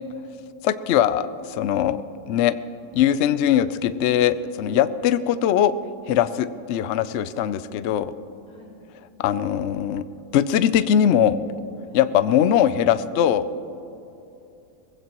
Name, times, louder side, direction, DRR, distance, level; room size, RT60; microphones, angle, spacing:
voice 1, 0.6-2.0 2.3-2.5 2.9-5.7 6.1-8.1 9.2-10.0 10.3-11.4 11.9-13.4, left 10 dB, 90° left, 13 dB, 0.6 m, -21 dB
voice 2, 4.2-4.8 6.2-6.4 8.5-8.8 11.8-12.0, left 3 dB, 70° left, -3 dB, 3.3 m, -49 dB
20.5 x 16.0 x 3.0 m, 2.8 s
omnidirectional pair, 1.8 m